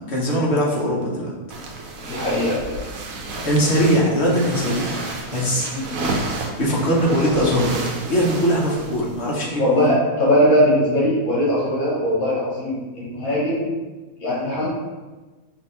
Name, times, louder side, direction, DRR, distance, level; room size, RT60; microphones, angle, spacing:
voice 1, 0.0-1.3 3.4-5.0 5.3-5.7 6.6-7.7 8.1-9.8, equal, 50° left, -4 dB, 1.2 m, -20 dB
sound 1, 1.5-9.3, right 3 dB, 70° right, 1.1 m, -31 dB
voice 2, 2.0-2.8 3.3-3.5 5.7-6.1 9.6-13.7 14.2-14.7, equal, 80° left, -5 dB, 1.7 m, -20 dB
5.2 x 2.8 x 3.2 m, 1.3 s
omnidirectional pair, 1.6 m